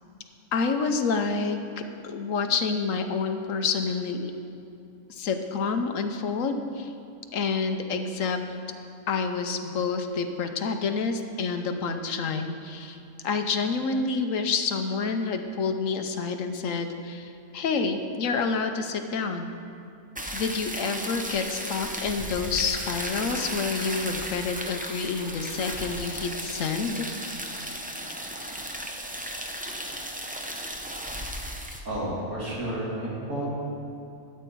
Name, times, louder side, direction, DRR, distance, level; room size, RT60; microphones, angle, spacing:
voice 1, 0.5-4.3 5.1-6.9 7.3-8.4 9.1-19.6 20.3-27.1, left 4 dB, 70° left, 6 dB, 1.1 m, -28 dB
sound 1, 20.2-31.8, equal, 10° right, 0.4 m, -35 dB
voice 2, 31.8-33.5, right 1 dB, 60° right, -6 dB, 3.0 m, -31 dB
13.0 x 8.3 x 4.6 m, 2.6 s
omnidirectional pair, 1.5 m